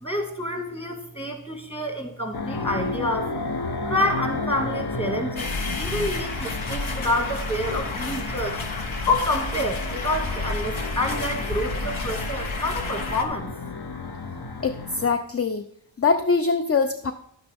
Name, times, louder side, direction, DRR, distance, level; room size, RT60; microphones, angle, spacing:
voice 1, 0.0-3.3 3.9-5.5 5.8-8.6 9.1-13.5, left 1 dB, 10° left, 3 dB, 1.9 m, -28 dB
sound 1, 2.3-15.1, left 3 dB, 50° left, 0.9 m, -33 dB
sound 2, 5.4-13.2, left 2 dB, 75° left, 1.1 m, -31 dB
voice 2, 14.6-15.7 16.0-17.1, left 4 dB, 30° left, 8 dB, 0.5 m, -23 dB
10.5 x 9.1 x 3.5 m, 0.69 s
wide cardioid pair, 45°, 48 cm